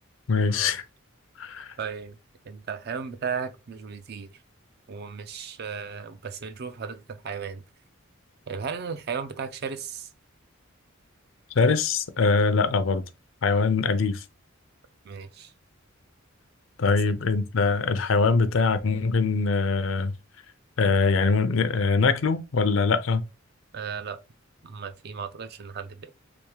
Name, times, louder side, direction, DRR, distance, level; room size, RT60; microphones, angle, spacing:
voice 1, 0.3-0.8 1.4-1.7 11.6-13.0 13.4-14.2 16.8-20.1 20.8-23.2, left 4 dB, 65° left, 0.5 m, -23 dB
voice 2, 1.8-2.2 2.4-4.4 4.9-7.6 8.5-10.1 15.0-15.5 23.7-24.2 24.6-26.1, right 6 dB, 50° right, 0.4 m, -35 dB
3.5 x 2.9 x 3.1 m
head